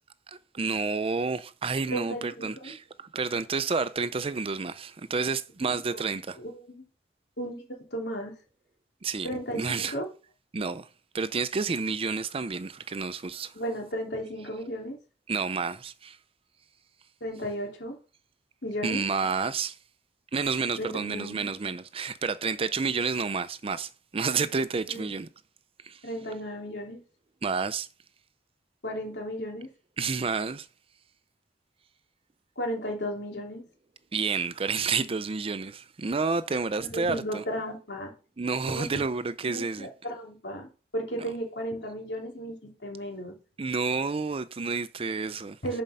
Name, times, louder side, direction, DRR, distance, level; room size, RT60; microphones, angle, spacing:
voice 1, 0.3-2.8 3.1-6.4 9.0-9.3 9.5-10.0 10.5-10.9 11.1-13.5 15.3-16.2 18.8-19.8 20.3-25.3 25.8-26.0 27.4-27.9 30.0-30.7 34.1-37.4 38.4-39.9 43.6-45.6, right 4 dB, 35° right, 0.5 m, -30 dB
voice 2, 1.9-2.7 5.6-6.0 6.4-6.9 7.4-8.3 9.2-10.1 13.5-15.0 17.2-17.9 18.6-19.0 20.7-21.5 24.9-25.1 26.0-27.0 28.8-29.7 32.6-33.6 36.8-38.1 38.7-38.9 39.4-43.3 45.6-45.8, equal, 80° left, 3.0 m, -35 dB
7.3 x 5.2 x 5.5 m
head